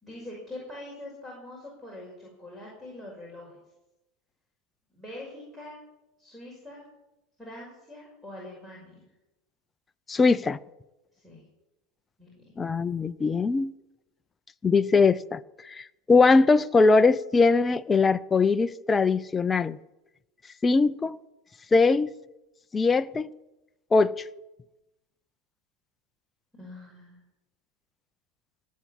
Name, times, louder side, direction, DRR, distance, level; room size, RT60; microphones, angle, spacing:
voice 1, 0.0-3.6 4.9-5.8 6.2-6.8 7.4-9.0 11.1-11.4 12.2-12.5 26.5-27.2, left 1 dB, 5° right, 5.8 m, -43 dB
voice 2, 10.1-10.6 12.6-13.7 14.6-19.8 20.6-21.2 21.7-22.1 22.7-23.3 23.9-24.1, left 4 dB, 15° left, 0.5 m, -21 dB
19.0 x 8.4 x 8.8 m
supercardioid pair, 125°, 0 cm